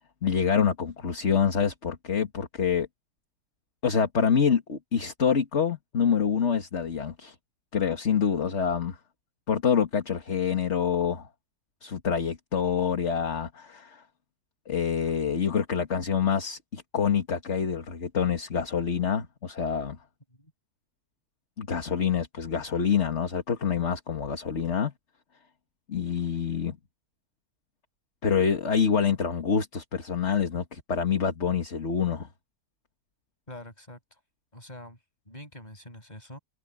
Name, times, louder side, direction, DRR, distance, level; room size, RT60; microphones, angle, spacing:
voice 1, 0.2-2.9 3.8-7.3 7.7-9.0 9.5-11.3 11.8-14.0 14.7-20.0 21.6-24.9 25.9-26.8 28.2-32.3, left 7 dB, 45° left, 2.0 m, -26 dB
voice 2, 33.5-34.2 34.5-35.0 35.3-36.4, left 1 dB, 25° left, 7.2 m, -45 dB
omnidirectional pair, 1.7 m